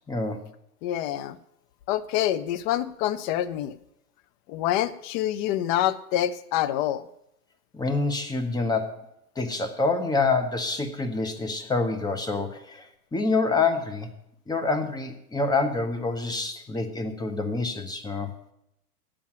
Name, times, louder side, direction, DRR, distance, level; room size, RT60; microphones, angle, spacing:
voice 1, 0.1-0.5 7.7-9.0 9.4-14.1 14.5-18.3, left 3 dB, 10° left, 6 dB, 1.1 m, -27 dB
voice 2, 0.8-1.4 1.9-3.8 4.5-7.1, left 12 dB, 35° left, 14 dB, 0.6 m, -26 dB
8.7 x 7.3 x 8.5 m, 0.79 s
figure-of-eight pair, 95°, 45 cm